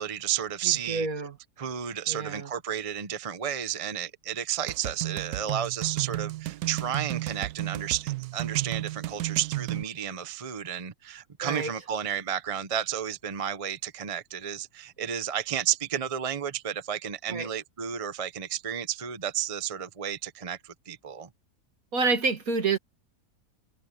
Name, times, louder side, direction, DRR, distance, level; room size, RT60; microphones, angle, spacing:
voice 1, 0.0-1.1 1.6-21.3, right 9 dB, 35° right, 0.6 m, -32 dB
voice 2, 0.6-1.4 2.1-2.5 11.4-11.7 17.3-17.5 21.9-22.8, right 4 dB, 60° right, 2.3 m, -28 dB
sound 1, 4.7-9.8, right 16 dB, 80° right, 1.2 m, -33 dB
omnidirectional pair, 1.7 m